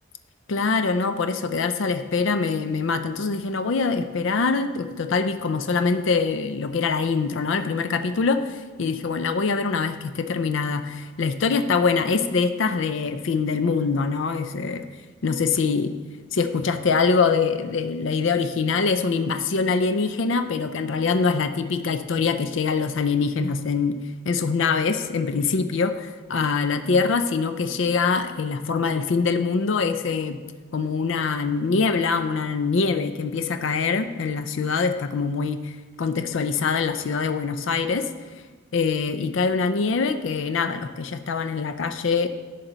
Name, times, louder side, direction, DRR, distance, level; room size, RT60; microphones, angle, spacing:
voice 1, 0.5-14.9 15.2-15.9 16.3-24.0 24.2-30.4 30.7-38.1 38.7-42.3, left 4 dB, 65° left, 9 dB, 0.5 m, -24 dB
11.5 x 6.6 x 3.9 m, 1.4 s
head